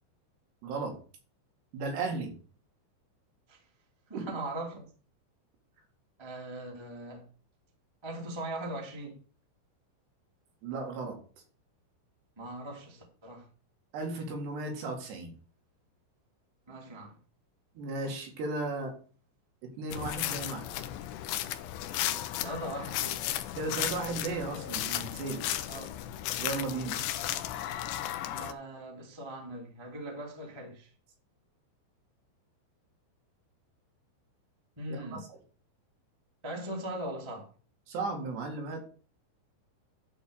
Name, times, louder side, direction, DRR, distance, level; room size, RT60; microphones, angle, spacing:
voice 1, 0.6-1.0 1.7-2.3 4.1-4.4 10.6-11.2 13.9-15.3 17.8-19.0 19.6-20.7 23.6-25.4 26.4-27.0 34.9-35.4 37.9-38.8, right 3 dB, 60° right, 3.8 m, -35 dB
voice 2, 4.1-4.9 6.2-7.2 8.0-9.1 12.4-13.4 16.7-17.1 22.4-23.2 25.7-25.9 28.3-30.9 34.8-35.2 36.4-37.4, right 1 dB, 15° right, 0.8 m, -40 dB
sound 1, 19.9-28.5, left 13 dB, 85° left, 2.4 m, -35 dB
12.0 x 4.8 x 6.5 m
omnidirectional pair, 5.9 m